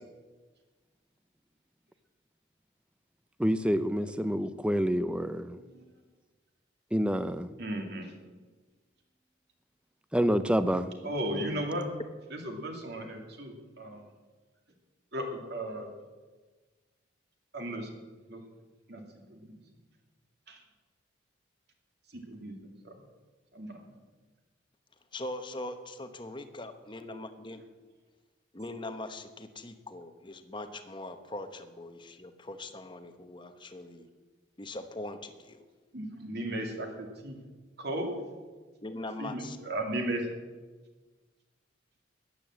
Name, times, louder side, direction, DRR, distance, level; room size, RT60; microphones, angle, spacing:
voice 1, 3.4-5.6 6.9-7.5 10.1-10.9, equal, 5° right, 12 dB, 0.5 m, -27 dB
voice 2, 7.6-8.1 11.0-11.9 12.3-14.0 15.1-15.9 17.5-18.0 18.3-18.4 18.9-19.6 20.5-20.6 22.1-22.5 22.8-22.9 23.5-23.9 35.9-37.4 37.8-38.2 39.2-40.3, right 1 dB, 55° right, 3 dB, 2.4 m, -35 dB
voice 3, 25.1-27.6 28.5-34.1 34.6-35.6 38.8-39.6, left 2 dB, 25° left, 8 dB, 1.0 m, -41 dB
14.0 x 9.9 x 7.7 m, 1.3 s
head